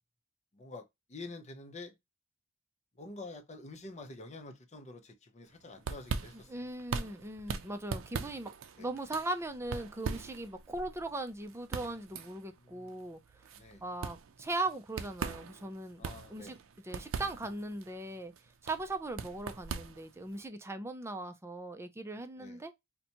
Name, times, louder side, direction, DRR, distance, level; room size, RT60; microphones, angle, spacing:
voice 1, 0.5-0.8 1.1-1.9 3.0-6.5 8.8-8.9 12.6-12.9 13.6-13.8 16.0-16.6 22.4-22.6, left 2 dB, 35° left, 0.6 m, -47 dB
sound 1, 5.5-20.4, right 5 dB, 85° right, 0.5 m, -41 dB
voice 2, 6.5-8.5 8.8-13.4 13.8-16.6 16.8-18.3 18.6-22.7, right 2 dB, 15° right, 0.4 m, -39 dB
4.1 x 2.2 x 2.8 m
head